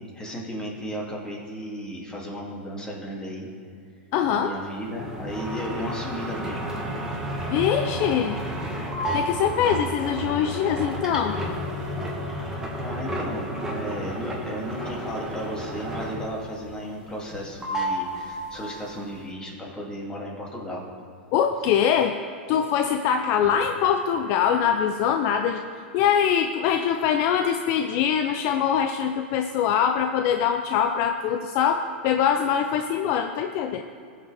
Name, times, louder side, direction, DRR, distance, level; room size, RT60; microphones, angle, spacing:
voice 1, 0.1-3.5 4.3-6.7 12.8-20.9, equal, 15° left, -3 dB, 2.6 m, -34 dB
voice 2, 4.1-4.5 7.5-8.4 9.1-11.4 21.3-22.2 22.5-25.6 25.9-33.8, left 8 dB, 50° left, 7 dB, 0.5 m, -23 dB
sound 1, 5.0-16.5 16.8-17.4 17.6-18.9, equal, 10° right, 1.7 m, -31 dB
18.0 x 6.4 x 3.5 m, 2.3 s
hypercardioid pair, 120°, 6 cm